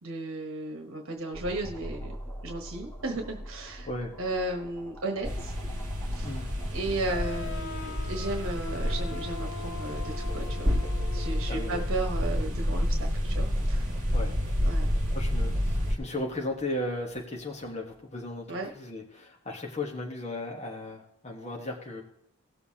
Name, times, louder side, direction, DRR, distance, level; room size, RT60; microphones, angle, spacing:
voice 1, 0.0-2.1 2.4-3.9 4.2-5.5 6.1-6.3 6.7-10.7 11.1-14.0 14.7-14.9 18.5-18.7, right 2 dB, 60° right, 2 dB, 1.2 m, -35 dB
sound 1, 1.3-18.6, equal, 10° left, 1.6 m, -46 dB
sound 2, 5.2-16.0, equal, 35° right, 2.0 m, -29 dB
sound 3, 7.1-12.6, left 6 dB, 55° left, 0.6 m, -43 dB
voice 2, 11.5-11.8 14.1-14.4 15.1-22.0, left 1 dB, 30° left, -1 dB, 1.3 m, -36 dB
18.0 x 6.9 x 2.8 m, 0.76 s
head